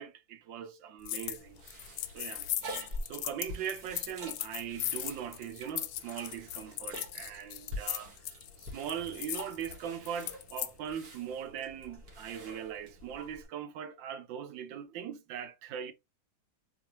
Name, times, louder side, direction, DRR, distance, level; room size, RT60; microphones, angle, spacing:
voice 1, 0.0-1.6 2.1-8.1 8.6-15.9, right 8 dB, 75° right, 1.4 m, -40 dB
sound 1, 1.0-1.4 1.7-10.7, left 13 dB, 80° left, 1.3 m, -38 dB
sound 2, 1.4-13.4, equal, 50° right, 2.0 m, -46 dB
4.0 x 3.1 x 2.9 m
omnidirectional pair, 2.2 m